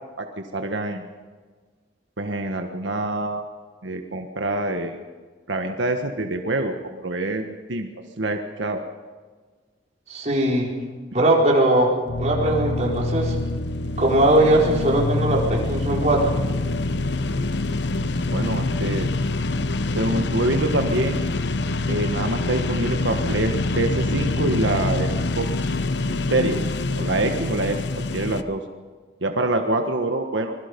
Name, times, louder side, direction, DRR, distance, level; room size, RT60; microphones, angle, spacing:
voice 1, 0.5-1.0 2.2-3.4 3.8-5.0 5.5-7.9 8.2-8.8 18.3-19.1 19.9-21.2 21.9-25.1 25.3-25.8 26.3-26.6 26.9-27.8 28.1-28.6 29.2-30.5, right 2 dB, 90° right, 5 dB, 1.5 m, -25 dB
voice 2, 10.1-10.7 11.1-13.4 14.0-16.4 26.1-26.2, right 1 dB, 40° right, -2 dB, 5.0 m, -20 dB
sound 1, 12.1-28.4, left 2 dB, 70° left, 0.9 m, -25 dB
25.5 x 21.0 x 5.4 m, 1.4 s
head